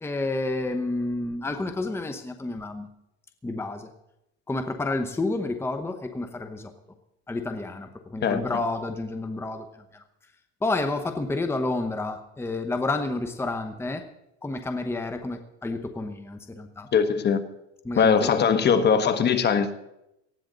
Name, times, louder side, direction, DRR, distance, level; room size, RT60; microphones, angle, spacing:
voice 1, 0.0-2.9 3.4-3.9 4.5-6.7 7.3-9.7 9.9-10.0 10.6-14.0 14.4-16.9 17.8-18.3, left 2 dB, 5° left, 7 dB, 1.0 m, -30 dB
voice 2, 16.9-17.4 18.0-19.7, left 6 dB, 30° left, 10 dB, 1.2 m, -21 dB
18.5 x 14.5 x 4.0 m, 0.85 s
supercardioid pair, 135°, 33 cm